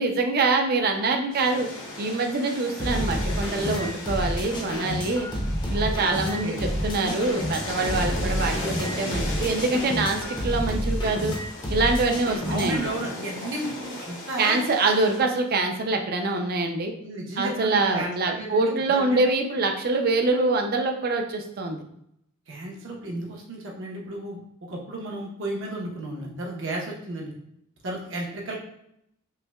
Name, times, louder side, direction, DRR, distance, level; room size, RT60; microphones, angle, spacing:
voice 1, 0.0-1.7 2.0-5.3 5.7-11.4 11.7-12.9 14.4-16.9 17.4-21.8, right 3 dB, 45° right, 4 dB, 0.5 m, -25 dB
sound 1, 1.3-15.2, left 2 dB, 60° left, 0.9 m, -37 dB
sound 2, 2.8-12.9, equal, 20° left, 0.6 m, -29 dB
voice 2, 9.1-9.5 12.5-14.6 17.0-19.2 22.5-24.4 24.7-27.3 27.8-28.6, right 2 dB, 65° right, -2 dB, 0.9 m, -33 dB
5.5 x 2.2 x 2.2 m, 0.75 s
head